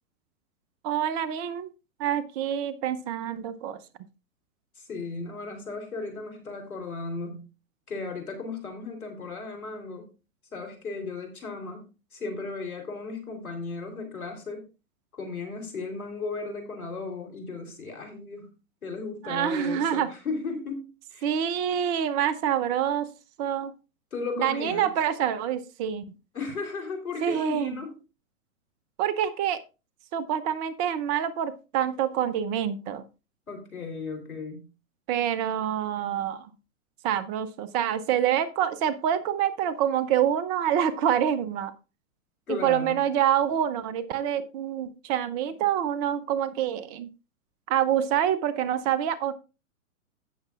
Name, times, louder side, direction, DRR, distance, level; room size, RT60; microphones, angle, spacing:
voice 1, 0.8-1.7 2.0-3.8 19.2-20.1 21.2-23.1 23.4-23.7 24.4-26.0 27.2-27.8 29.0-29.6 30.1-33.0 35.1-36.5 37.0-41.7 42.5-47.1 47.7-49.3, right 9 dB, 30° right, 13 dB, 0.7 m, -26 dB
voice 2, 4.8-7.4 7.9-10.1 10.5-14.7 15.2-18.5 18.8-21.3 24.1-24.9 26.3-28.0 33.5-34.7 42.5-43.0, left 4 dB, 80° left, 4 dB, 3.6 m, -35 dB
16.0 x 6.7 x 2.4 m, 0.30 s
hypercardioid pair, 115°, 42 cm